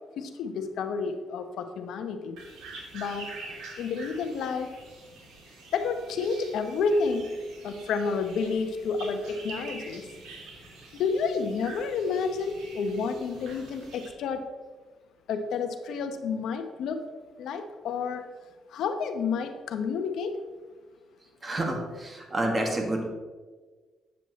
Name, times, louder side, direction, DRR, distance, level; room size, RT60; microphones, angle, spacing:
voice 1, 0.2-2.4 2.9-3.3 3.8-4.7 5.7-7.2 7.6-10.1 10.9-14.4 15.3-17.0 17.4-18.2 18.7-20.4, left 5 dB, 80° left, 7 dB, 0.8 m, -30 dB
sound 1, 2.4-14.1, right 3 dB, 85° right, 2.0 m, -46 dB
voice 2, 21.4-23.1, right 1 dB, 30° right, 2 dB, 1.7 m, -29 dB
9.0 x 7.0 x 3.1 m, 1.4 s
cardioid pair, 90°, 0 cm